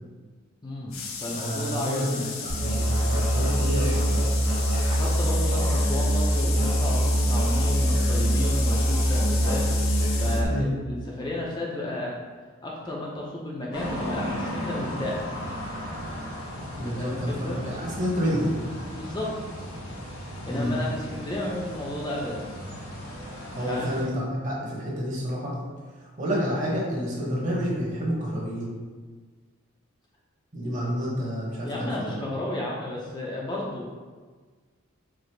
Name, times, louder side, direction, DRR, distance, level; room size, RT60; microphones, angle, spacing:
voice 1, 0.6-2.3 4.9-9.7 10.2-12.2 12.6-15.4 16.8-17.6 18.9-19.3 20.5-22.4 23.4-24.1 31.6-33.9, left 1 dB, 20° left, -4 dB, 0.5 m, -33 dB
sound 1, 0.9-10.4, left 5 dB, 70° left, 0.5 m, -35 dB
voice 2, 1.3-4.2 10.4-10.7 16.8-18.5 20.5-20.8 23.6-25.6 26.0-28.7 30.5-32.2, equal, 35° right, -4 dB, 1.0 m, -29 dB
Musical instrument, 2.5-10.4, equal, 90° right, 1.5 m, -23 dB
sound 2, 13.7-24.0, equal, 90° left, 1.1 m, -36 dB
4.8 x 2.0 x 4.5 m, 1.4 s
head